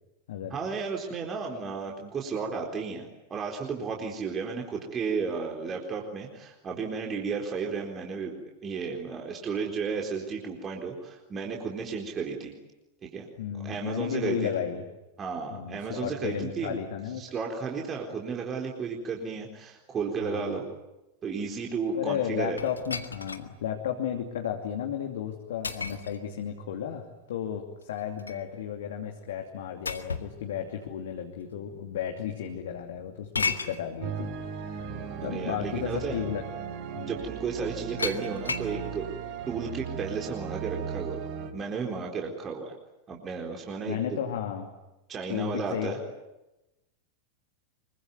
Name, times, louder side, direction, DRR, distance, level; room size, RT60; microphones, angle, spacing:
voice 1, 0.5-12.5 13.0-13.3 13.5-14.3 15.2-16.8 17.2-20.6 21.2-22.6 35.2-36.2 37.0-39.1 39.5-41.3 41.5-42.7 43.1-44.0 45.1-46.0, right 5 dB, 25° right, 0 dB, 4.1 m, -33 dB
voice 2, 13.4-14.8 15.5-17.2 20.2-20.6 21.9-34.3 34.5-34.9 35.2-36.4 36.9-37.1 43.8-44.7 45.3-46.0, left 9 dB, 60° left, 3 dB, 2.7 m, -33 dB
sound 1, 22.6-23.5 24.1-24.2 25.6-26.2 27.8-28.5 29.9-30.4 31.4-31.5 33.3-33.8 35.2-35.3 35.8-36.0 38.0-38.7, left 4 dB, 75° left, 1.9 m, -33 dB
sound 2, 34.0-41.5, right 7 dB, 45° right, 3.9 m, -37 dB
26.0 x 23.5 x 9.6 m, 0.97 s
figure-of-eight pair, 90°, 0 cm